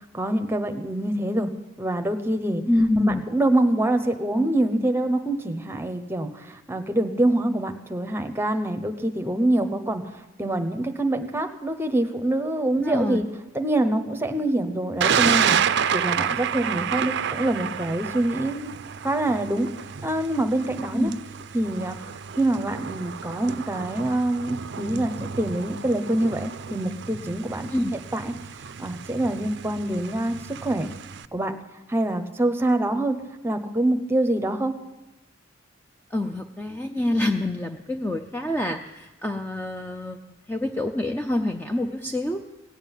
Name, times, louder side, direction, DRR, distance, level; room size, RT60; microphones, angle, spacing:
voice 1, 0.1-1.5 1.8-2.6 3.0-13.3 13.5-18.7 19.0-19.7 20.0-21.1 21.5-22.1 22.4-27.7 28.1-28.3 28.8-30.9 31.3-31.5 31.9-33.2 33.4-34.7, right 1 dB, 10° right, 6 dB, 0.9 m, -25 dB
voice 2, 2.7-3.2 12.7-13.2 20.9-21.1 27.7-27.9 36.1-42.4, left 1 dB, 10° left, 5 dB, 0.5 m, -26 dB
Thunder, 15.0-31.3, right 8 dB, 60° right, 0.5 m, -30 dB
17.5 x 7.6 x 9.1 m, 1.0 s
head